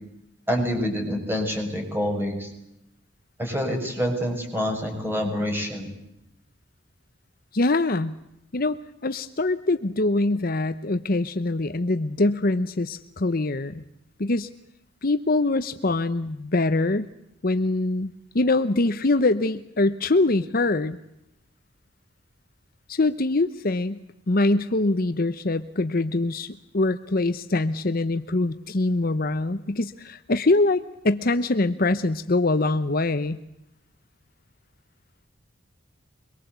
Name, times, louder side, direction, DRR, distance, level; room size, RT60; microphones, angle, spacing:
voice 1, 0.5-2.5 3.4-5.9, equal, 10° right, 3 dB, 6.6 m, -27 dB
voice 2, 7.5-8.2 8.5-13.8 14.2-14.5 15.0-17.1 17.4-21.0 22.9-24.0 24.3-33.4, left 2 dB, 45° left, 11 dB, 0.9 m, -24 dB
25.0 x 22.5 x 8.1 m, 0.84 s
head